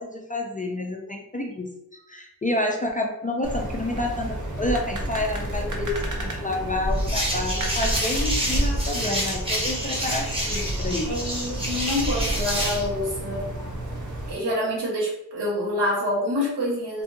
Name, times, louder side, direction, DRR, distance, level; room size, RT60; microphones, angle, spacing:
voice 1, 0.0-1.7 2.1-11.1 13.6-13.7, left 1 dB, 20° left, 0 dB, 0.3 m, -29 dB
sound 1, 3.4-14.3, right 1 dB, 45° right, 0.7 m, -30 dB
sound 2, 7.0-12.9, equal, 15° right, 1.0 m, -29 dB
voice 2, 11.0-13.4 14.3-17.0, left 1 dB, 75° right, -5 dB, 1.1 m, -27 dB
2.6 x 2.5 x 2.5 m, 0.86 s
cardioid pair, 70°, 41 cm